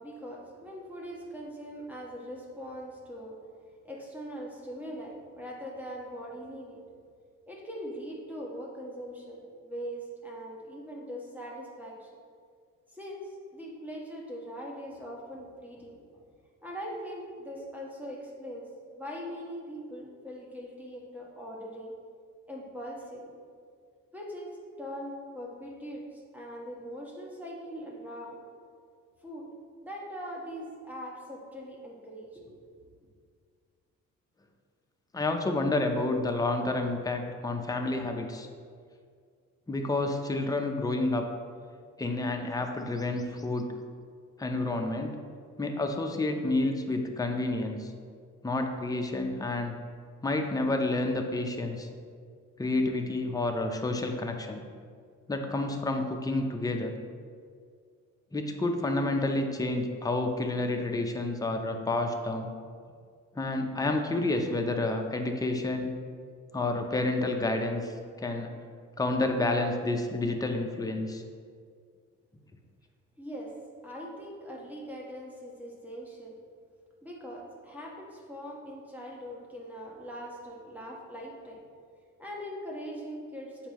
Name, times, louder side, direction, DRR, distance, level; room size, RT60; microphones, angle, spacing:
voice 1, 0.0-3.4 3.8-6.8 7.5-12.1 12.9-16.2 16.6-21.9 22.5-23.4 24.1-24.5 24.8-28.4 29.2-29.5 29.8-32.6 73.2-73.5 73.8-76.4 77.0-81.6 82.2-83.7, equal, 5° right, -3 dB, 1.2 m, -41 dB
voice 2, 35.1-38.5 39.7-41.3 42.0-43.7 44.4-45.2 45.6-47.9 48.4-49.8 50.2-51.9 52.6-54.6 55.3-56.9 58.3-62.5 63.4-65.9 66.5-68.5 69.0-71.2, left 2 dB, 10° left, 4 dB, 0.6 m, -29 dB
7.3 x 4.6 x 3.0 m, 2.1 s
cardioid pair, 90°, 30 cm